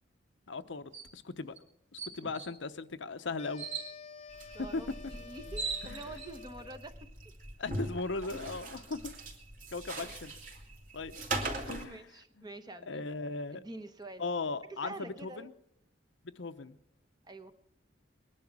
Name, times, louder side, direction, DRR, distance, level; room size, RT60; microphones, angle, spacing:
voice 1, 0.5-1.5 1.9-3.7 4.7-4.8 5.8-6.0 7.6-9.1 9.7-10.3 10.9-11.1 11.7-12.1 12.4-12.5 12.9-13.6 14.2-15.5 16.2-16.8, left 3 dB, 70° left, 10 dB, 0.8 m, -38 dB
sound 1, 0.9-1.1 1.6-1.7 2.0-2.5 3.6-3.9 5.0-5.1 5.3-6.3, right 5 dB, 65° right, 2.5 m, -38 dB
sound 2, 3.4-6.9, left 5 dB, 35° left, 0.6 m, -50 dB
sound 3, 4.3-11.8, right 2 dB, 40° right, 2.6 m, -41 dB
voice 2, 4.5-6.9 11.4-11.6 11.8-13.1 13.5-14.2 14.8-15.5 17.3-17.5, right 2 dB, 20° right, 8 dB, 1.0 m, -46 dB
21.0 x 11.0 x 6.1 m, 0.80 s
head